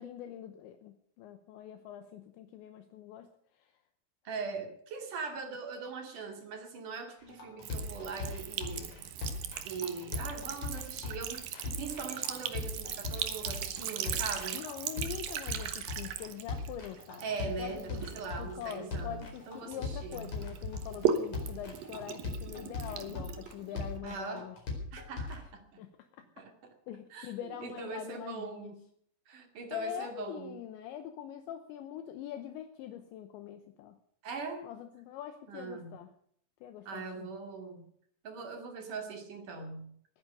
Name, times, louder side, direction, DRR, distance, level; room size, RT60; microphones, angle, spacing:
voice 1, 0.0-3.3 3.5-3.7 14.5-17.3 17.6-24.6 25.8-26.2 26.9-28.8 29.7-34.0 34.6-36.1 36.6-37.3, left 10 dB, 75° left, 8 dB, 2.9 m, -43 dB
voice 2, 4.2-8.9 9.6-14.6 17.2-20.4 24.0-24.5 24.9-25.8 26.4-26.5 27.1-27.3 27.6-28.8 29.3-30.6 34.2-34.7 35.5-36.0 36.8-37.9 38.2-39.9, right 4 dB, 45° right, 5 dB, 3.4 m, -41 dB
sound 1, 7.2-25.4, left 3 dB, 35° left, 5.3 m, -40 dB
Sink (filling or washing) / Trickle dribble, 7.6-19.7 20.1-24.0, right 8 dB, 70° right, 2.2 m, -38 dB
21.0 x 10.0 x 6.7 m, 0.63 s
omnidirectional pair, 5.9 m